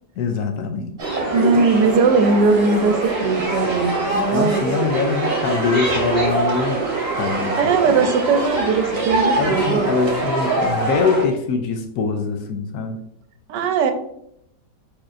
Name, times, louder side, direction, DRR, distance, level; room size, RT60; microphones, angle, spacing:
voice 1, 0.2-0.9 1.3-1.6 4.3-6.8 7.1-7.6 7.9-8.0 9.4-13.0, left 5 dB, 70° left, 5 dB, 1.0 m, -23 dB
sound 1, 1.0-11.2, right 3 dB, 40° right, 1.1 m, -23 dB
voice 2, 1.3-4.7 7.6-9.9 13.5-13.9, right 4 dB, 80° right, 7 dB, 1.2 m, -19 dB
4.8 x 4.3 x 2.5 m, 0.74 s
omnidirectional pair, 1.9 m